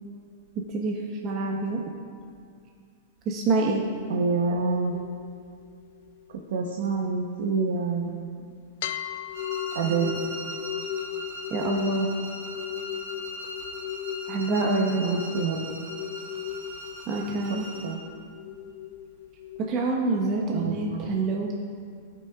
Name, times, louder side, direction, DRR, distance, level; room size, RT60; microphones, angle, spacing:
voice 1, 0.7-1.8 3.3-3.8 11.5-12.1 14.3-15.1 17.1-17.7 19.7-21.5, right 3 dB, 30° right, -1 dB, 0.7 m, -26 dB
voice 2, 4.1-5.0 6.5-8.4 9.7-10.2 15.0-15.7 17.5-18.0 20.5-21.1, right 4 dB, 80° right, 0 dB, 0.9 m, -27 dB
sound 1, 4.9-8.3 8.8-19.9, left 11 dB, 60° left, 0.4 m, -37 dB
sound 2, 9.3-18.1, right 1 dB, 45° right, 1.5 m, -39 dB
16.5 x 5.9 x 2.4 m, 2.3 s
supercardioid pair, 160°, 0 cm